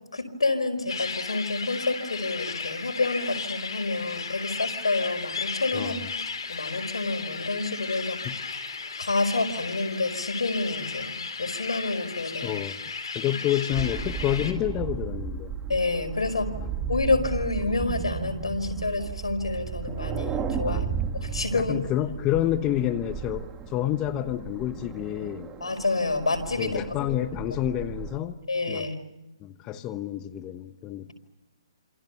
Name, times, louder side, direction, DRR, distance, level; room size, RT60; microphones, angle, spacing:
voice 1, 0.1-6.0 6.5-8.2 9.0-11.1 11.4-12.5 15.7-16.5 16.9-20.9 21.1-21.8 25.6-26.8 28.5-29.2, left 3 dB, 90° left, 5 dB, 5.0 m, -28 dB
sound 1, 0.9-14.5, left 5 dB, 70° left, 4.3 m, -35 dB
voice 2, 5.7-6.1 8.2-8.4 12.4-12.8 13.1-15.5 16.6-16.7 20.6-21.0 21.5-25.5 26.6-28.4 28.7-28.8 29.4-31.1, left 12 dB, 20° left, 11 dB, 1.1 m, -29 dB
sound 2, 13.7-28.2, right 6 dB, 15° right, 2.2 m, -34 dB
28.5 x 27.5 x 7.1 m, 0.92 s
hypercardioid pair, 150°, 3 cm